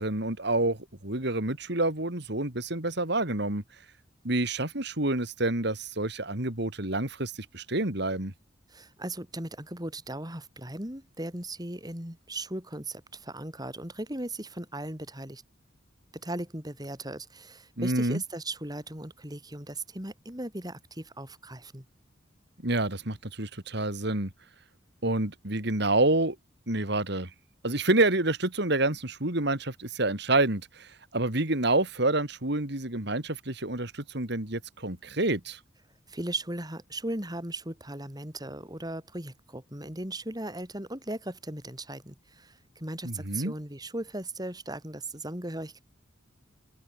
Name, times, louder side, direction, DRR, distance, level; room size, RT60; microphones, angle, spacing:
voice 1, 0.0-3.6 4.2-8.3 17.8-18.2 22.6-24.3 25.0-26.4 26.7-27.3 27.6-35.6 43.0-43.5, right 2 dB, 60° right, 3.3 m, -28 dB
voice 2, 8.7-15.4 16.1-21.9 36.1-45.8, right 1 dB, 20° right, 6.4 m, -37 dB
open air
head